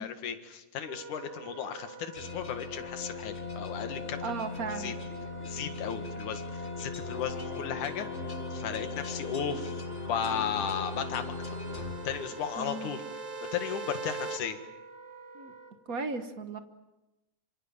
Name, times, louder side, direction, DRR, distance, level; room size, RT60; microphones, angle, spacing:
voice 1, 0.0-4.4 4.8-4.9 5.4-8.1 8.5-9.8 10.1-11.6 12.0-13.0 13.5-14.6, left 8 dB, 75° left, 8 dB, 3.2 m, -35 dB
Wind instrument woodwind instrument, 0.8-15.7, right 3 dB, 10° right, 2.5 m, -49 dB
sound 1, 2.1-12.8, left 3 dB, 30° left, 1.6 m, -39 dB
voice 2, 4.2-4.9 12.6-12.9 15.3-15.5 15.9-16.6, right 4 dB, 45° right, 9 dB, 1.1 m, -35 dB
sound 2, 9.4-14.4, right 3 dB, 30° right, 1.9 m, -42 dB
26.5 x 26.0 x 7.4 m, 0.97 s
omnidirectional pair, 3.6 m